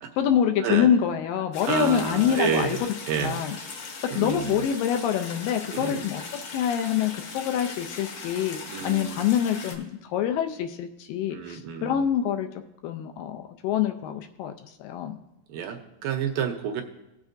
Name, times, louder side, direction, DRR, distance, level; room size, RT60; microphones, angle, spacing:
voice 1, 0.2-2.9 3.2-3.6 3.8-6.2 6.5-12.5 12.8-14.5 14.8-15.2, left 9 dB, 80° left, 6 dB, 2.2 m, -26 dB
sound 1, 1.5-9.7, left 4 dB, 65° left, 1.7 m, -39 dB
voice 2, 1.7-3.4 4.1-4.6 5.7-6.1 8.7-9.3 11.3-12.1 15.5-16.8, right 7 dB, 75° right, 4 dB, 2.3 m, -30 dB
18.5 x 7.3 x 2.6 m, 0.90 s
omnidirectional pair, 4.2 m